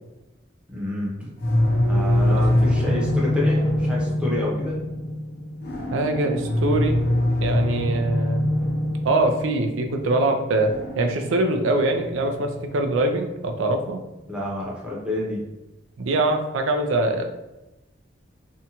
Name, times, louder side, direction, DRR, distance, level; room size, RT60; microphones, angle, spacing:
voice 1, 0.7-1.3 1.9-4.8 14.3-15.4, left 1 dB, 5° right, -5 dB, 0.7 m, -29 dB
sound 1, 1.4-14.2, left 1 dB, 55° left, 0.5 m, -24 dB
voice 2, 5.9-7.0 7.4-8.6 9.0-10.7 11.0-14.0 16.0-17.3, right 2 dB, 85° right, 5 dB, 0.4 m, -23 dB
2.6 x 2.2 x 2.8 m, 0.98 s
head